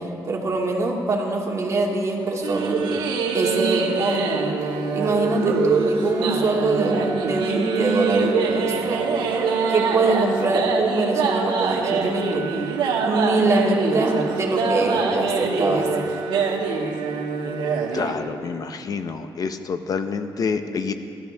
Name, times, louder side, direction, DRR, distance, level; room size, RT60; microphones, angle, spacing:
voice 1, 0.0-2.8 3.3-4.2 4.9-9.1 9.7-12.5 13.0-15.9, right 2 dB, 40° right, -1 dB, 2.2 m, -23 dB
sound 1, 2.4-18.1, right 4 dB, 80° right, 1.7 m, -24 dB
voice 2, 17.9-20.9, left 5 dB, 50° left, 9 dB, 0.7 m, -27 dB
19.0 x 13.5 x 3.5 m, 2.5 s
cardioid pair, 95°, 8 cm